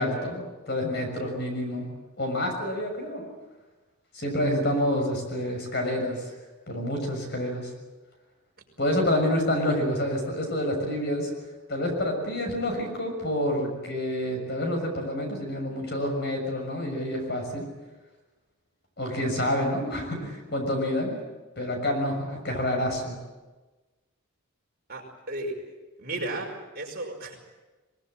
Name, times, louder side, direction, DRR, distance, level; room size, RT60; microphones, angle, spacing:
voice 1, 0.0-1.9 2.2-3.3 4.1-6.3 6.7-7.7 8.8-11.3 11.7-17.6 19.0-21.2 21.6-23.2, left 1 dB, 50° left, 3 dB, 6.7 m, -28 dB
voice 2, 24.9-25.6 26.0-27.3, right 2 dB, 45° right, 0 dB, 5.3 m, -34 dB
22.5 x 22.0 x 9.0 m, 1.2 s
head